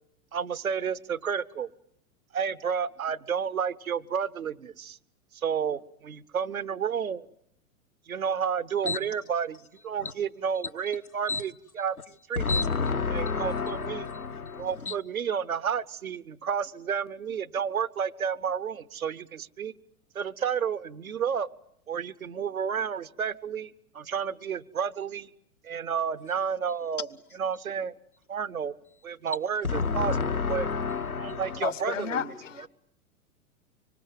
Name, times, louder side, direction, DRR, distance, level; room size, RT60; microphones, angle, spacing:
voice 1, 0.3-1.7 2.3-5.0 5.4-7.2 8.1-12.0 12.3-12.6 13.1-14.1 14.6-19.7 20.1-21.5 21.9-25.3 25.6-27.1 27.3-27.9 28.3-28.7 29.0-30.7 31.2-32.7, right 7 dB, 75° right, 1.0 m, -31 dB
voice 2, 12.4-14.9 29.6-31.6, left 5 dB, 85° left, 1.3 m, -29 dB
voice 3, 31.6-32.7, left 8 dB, 65° left, 1.2 m, -32 dB
25.5 x 25.0 x 7.5 m
figure-of-eight pair, 100°, 42 cm